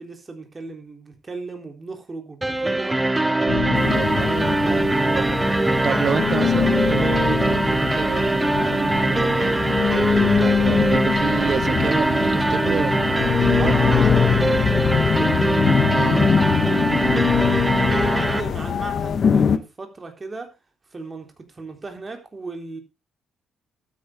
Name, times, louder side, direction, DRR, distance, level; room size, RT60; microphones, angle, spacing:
voice 1, 0.0-3.0 3.7-5.3 13.5-15.5 16.1-17.6 17.8-20.6 20.9-22.8, right 3 dB, 30° right, 3.6 m, -36 dB
sound 1, 2.4-18.4, right 2 dB, 15° right, 0.9 m, -22 dB
sound 2, 3.5-5.8 6.1-19.2, left 8 dB, 70° left, 2.0 m, -25 dB
voice 2, 3.6-4.8 5.1-14.0 15.9-16.3, right 7 dB, 50° right, 0.6 m, -29 dB
sound 3, 3.7-19.6, left 7 dB, 50° left, 1.3 m, -25 dB
12.5 x 9.3 x 3.6 m
cardioid pair, 90°, 0 cm